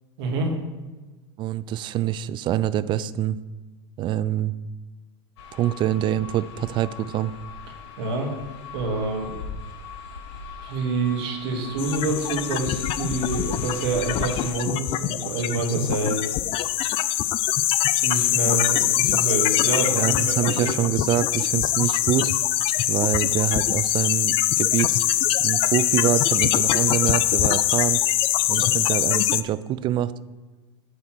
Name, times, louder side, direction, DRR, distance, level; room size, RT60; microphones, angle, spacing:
voice 1, 0.2-0.5 8.0-8.3 8.7-9.3 10.6-16.4 18.0-20.9 28.5-28.7, right 3 dB, 60° right, 1 dB, 2.3 m, -27 dB
voice 2, 1.4-3.4 4.0-4.5 5.5-7.3 19.9-22.3 22.9-25.0 25.4-28.0 28.5-30.1, right 12 dB, 35° right, 15 dB, 0.4 m, -25 dB
sound 1, 5.4-14.5, left 5 dB, 65° left, 1.5 m, -39 dB
sound 2, 11.8-29.4, left 14 dB, 40° left, 0.4 m, -23 dB
8.2 x 4.3 x 6.2 m, 1.3 s
hypercardioid pair, 95°, 15 cm